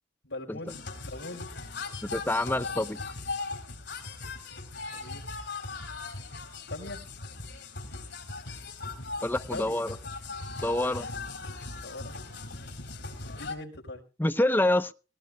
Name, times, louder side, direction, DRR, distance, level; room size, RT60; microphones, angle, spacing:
voice 1, 0.2-1.6 4.9-5.3 6.7-7.0 9.5-9.8 11.7-12.2 13.2-14.0, left 2 dB, 90° left, 4.6 m, -41 dB
sound 1, 0.7-13.6, left 3 dB, 70° left, 3.5 m, -39 dB
voice 2, 2.1-3.0 9.2-9.9 10.6-11.1 14.2-14.9, left 1 dB, 10° left, 0.8 m, -26 dB
19.5 x 19.0 x 2.3 m
head